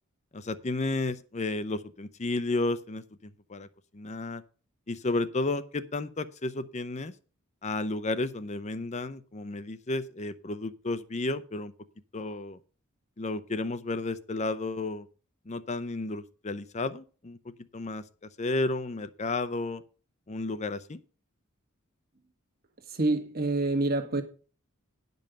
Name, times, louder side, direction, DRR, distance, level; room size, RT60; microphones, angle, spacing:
voice 1, 0.3-3.7 3.9-4.4 4.9-7.1 7.6-11.7 12.1-12.6 13.2-15.1 15.5-17.4 17.7-18.0 18.4-19.8 20.3-21.0, left 2 dB, 35° left, 0.6 m, -32 dB
voice 2, 22.9-24.2, right 2 dB, 45° right, 1.4 m, -27 dB
10.5 x 5.4 x 6.5 m
head